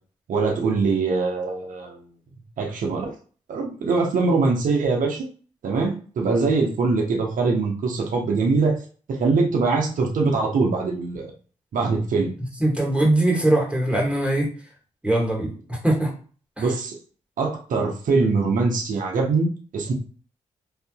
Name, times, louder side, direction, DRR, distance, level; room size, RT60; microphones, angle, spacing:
voice 1, 0.3-2.0 2.6-3.1 3.5-5.2 5.6-8.8 9.1-11.3 11.7-12.3 16.6-16.9 17.4-19.9, right 4 dB, 70° right, 0 dB, 0.9 m, -22 dB
voice 2, 12.6-14.5 15.0-16.1 16.6-16.7, right 1 dB, 10° right, -2 dB, 1.7 m, -21 dB
3.5 x 2.7 x 2.3 m, 0.40 s
supercardioid pair, 50°, 14 cm